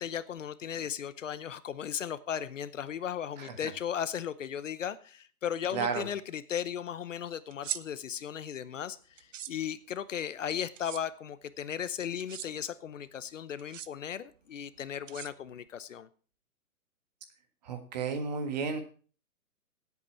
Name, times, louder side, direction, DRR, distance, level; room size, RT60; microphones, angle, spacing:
voice 1, 0.0-16.1, left 9 dB, 60° left, 16 dB, 0.9 m, -36 dB
voice 2, 5.7-6.0 17.6-18.8, right 5 dB, 30° right, 7 dB, 1.6 m, -32 dB
sound 1, 7.5-7.8 9.2-9.5 10.8-11.0 12.2-12.5 13.6-13.9 15.1-15.7, right 9 dB, 60° right, 0.7 m, -39 dB
16.0 x 8.4 x 4.4 m, 0.40 s
hypercardioid pair, 170°, 43 cm